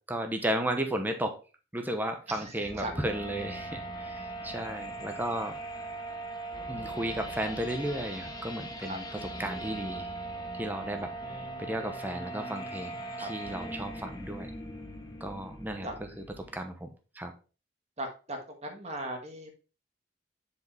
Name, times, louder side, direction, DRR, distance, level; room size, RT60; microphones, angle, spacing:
voice 1, 0.1-1.3 1.7-5.6 6.7-9.0 9.4-10.1 10.5-14.5 15.2-15.9 16.2-16.3 16.5-16.9 17.1-17.3, right 1 dB, 10° right, 5 dB, 0.9 m, -34 dB
voice 2, 2.3-2.9 8.9-9.0 13.2-13.3 15.8-15.9 18.0-19.5, right 1 dB, 40° right, 3 dB, 1.5 m, -38 dB
sound 1, 2.6-16.6, right 1 dB, 20° left, 1.0 m, -40 dB
6.7 x 4.9 x 3.4 m, 0.33 s
head